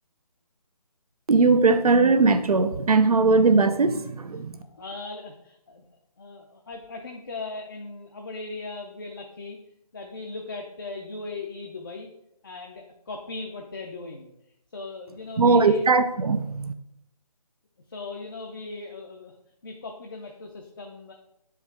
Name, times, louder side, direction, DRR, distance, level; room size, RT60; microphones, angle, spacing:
voice 1, 1.3-4.6 15.4-16.7, right 3 dB, 70° right, 0.5 m, -19 dB
voice 2, 4.6-5.9 6.2-9.6 9.9-12.1 12.4-14.3 14.7-15.8 17.9-19.3 19.6-21.1, left 3 dB, 35° left, 0.5 m, -38 dB
6.7 x 4.7 x 3.5 m
figure-of-eight pair, 155°, 20 cm